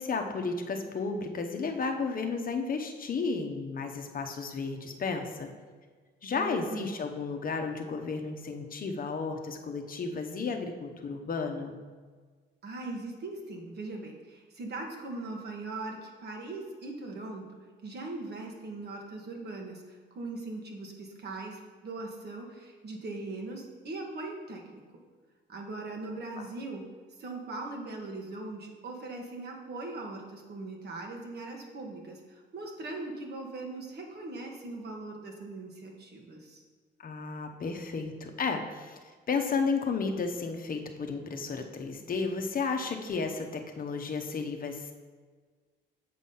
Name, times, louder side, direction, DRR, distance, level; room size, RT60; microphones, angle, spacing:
voice 1, 0.0-5.5 6.2-11.7 26.4-26.5 37.0-39.0 39.3-44.9, left 4 dB, 45° left, 5 dB, 0.9 m, -33 dB
voice 2, 6.3-6.9 12.6-24.8 25.5-26.9 27.2-36.6, right 2 dB, 55° right, 1 dB, 1.5 m, -40 dB
7.4 x 4.0 x 5.6 m, 1.5 s
cardioid pair, 90°, 20 cm